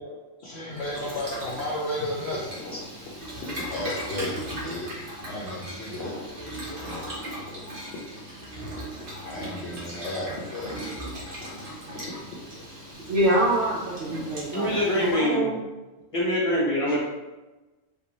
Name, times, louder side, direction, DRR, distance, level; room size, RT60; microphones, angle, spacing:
voice 1, 0.0-2.8 3.4-4.9 5.2-6.2 6.9-7.0 7.6-7.7 9.2-10.7 11.4-11.5 12.3-12.4, left 1 dB, 60° left, -5 dB, 0.9 m, -33 dB
Boiling, 0.7-15.3, equal, 45° right, 1.1 m, -38 dB
voice 2, 13.1-14.7 15.0-15.6, right 1 dB, 60° right, -3 dB, 0.8 m, -25 dB
voice 3, 14.5-15.5 16.1-17.0, equal, 30° left, -6 dB, 0.8 m, -25 dB
3.7 x 2.5 x 3.0 m, 1.1 s
omnidirectional pair, 1.3 m